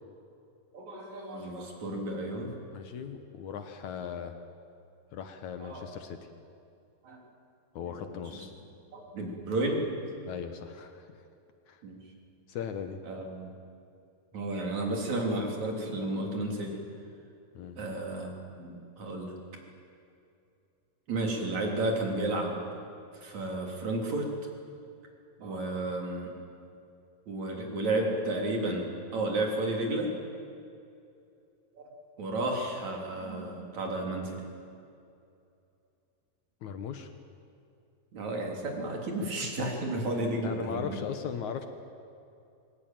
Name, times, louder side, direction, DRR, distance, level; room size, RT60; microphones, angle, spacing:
voice 1, 0.7-2.5 5.6-5.9 7.0-7.2 7.9-8.4 8.9-9.9 11.8-12.0 13.0-13.5 14.3-16.8 17.8-19.3 21.1-22.7 23.2-24.3 25.4-26.3 27.3-30.1 31.8-31.9 32.2-34.4 38.1-41.0, right 2 dB, 45° right, 0 dB, 4.4 m, -32 dB
voice 2, 2.7-4.4 5.1-6.2 7.7-8.5 10.3-11.3 11.7-11.8 12.5-13.0 17.5-17.8 36.6-37.1 39.2-39.3 40.4-41.7, left 7 dB, 65° left, 7 dB, 2.0 m, -38 dB
25.0 x 20.0 x 9.1 m, 2.6 s
omnidirectional pair, 4.7 m